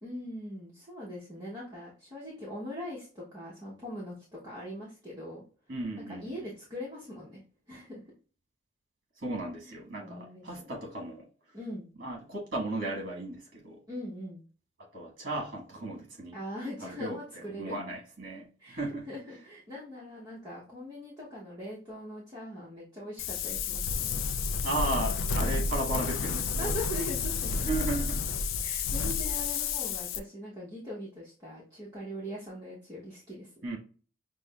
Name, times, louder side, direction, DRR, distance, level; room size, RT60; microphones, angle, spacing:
voice 1, 0.0-5.4 6.0-7.4 7.7-8.0 9.7-10.7 11.5-11.9 13.9-14.4 16.3-17.7 18.6-24.2 26.6-27.7 28.6-33.5, equal, 20° right, -7 dB, 0.9 m, -41 dB
voice 2, 5.7-6.5 9.2-11.3 12.0-13.8 14.8-16.4 16.8-17.2 17.5-19.1 24.6-26.8 27.6-28.4 33.6-33.8, right 1 dB, 45° right, -2 dB, 1.4 m, -35 dB
Wind, 23.2-30.2, left 5 dB, 85° left, 0.4 m, -31 dB
6.1 x 2.1 x 2.3 m, 0.39 s
head